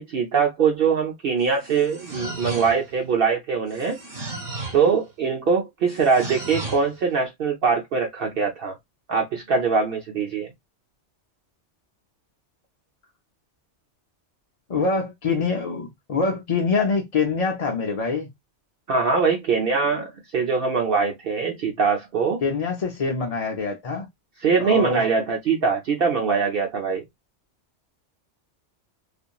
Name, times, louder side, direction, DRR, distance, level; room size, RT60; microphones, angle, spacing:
voice 1, 0.0-4.0 4.7-8.7 9.1-10.5 18.9-22.4 24.4-27.0, right 5 dB, 60° right, 0.7 m, -22 dB
sound 1, 1.4-3.0 3.7-4.9 5.9-6.9, right 2 dB, 45° right, 1.3 m, -35 dB
voice 2, 14.7-18.3 22.4-24.1 24.6-25.0, left 4 dB, 45° left, 0.5 m, -25 dB
2.8 x 2.5 x 2.2 m
omnidirectional pair, 1.2 m